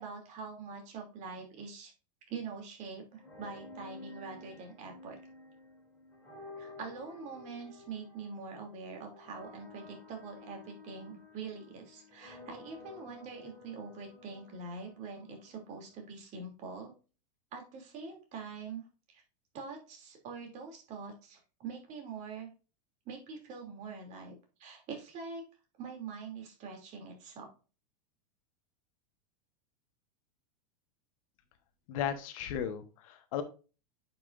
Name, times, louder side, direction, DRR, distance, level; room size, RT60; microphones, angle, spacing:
voice 1, 0.0-1.9 2.3-5.2 6.6-16.9 17.5-19.2 19.5-22.5 23.1-24.3 24.6-25.4 25.8-27.5, right 5 dB, 35° right, 2 dB, 2.8 m, -44 dB
sound 1, 3.1-16.1, left 3 dB, 5° left, 3.3 m, -52 dB
voice 2, 31.9-33.4, left 9 dB, 55° left, 8 dB, 1.2 m, -35 dB
9.3 x 6.0 x 2.5 m, 0.33 s
supercardioid pair, 150°, 21 cm